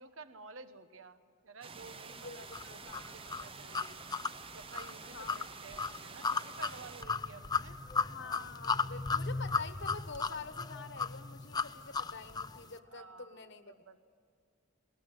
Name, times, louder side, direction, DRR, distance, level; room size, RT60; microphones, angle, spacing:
voice 1, 0.0-4.0 4.5-7.8 12.9-14.0, right 4 dB, 85° right, 10 dB, 1.2 m, -53 dB
sound 1, 1.6-7.0, right 5 dB, 30° right, 0.6 m, -49 dB
voice 2, 2.1-3.3 5.0-5.4 8.0-13.8, left 4 dB, 60° left, 10 dB, 1.3 m, -47 dB
sound 2, 2.5-12.6, left 4 dB, 20° left, 0.6 m, -35 dB
20.0 x 19.5 x 9.2 m, 2.4 s
head